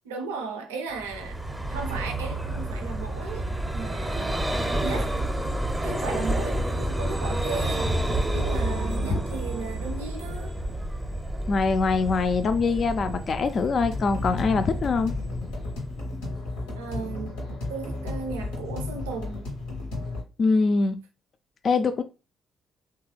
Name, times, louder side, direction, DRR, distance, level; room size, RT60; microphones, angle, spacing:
voice 1, 0.0-1.4 1.7-4.5 4.8-5.1 5.8-8.0 8.3-10.5 16.8-17.4 17.7-19.5, right 4 dB, 85° right, 0.4 m, -36 dB
Vehicle, 1.0-16.4, right 1 dB, 15° right, 0.6 m, -30 dB
voice 2, 11.5-15.1 20.4-21.0 21.6-22.0, left 4 dB, 50° left, 0.3 m, -23 dB
sound 1, 13.8-20.2, left 3 dB, 80° left, 0.7 m, -33 dB
2.9 x 2.2 x 3.1 m
hypercardioid pair, 45°, 0 cm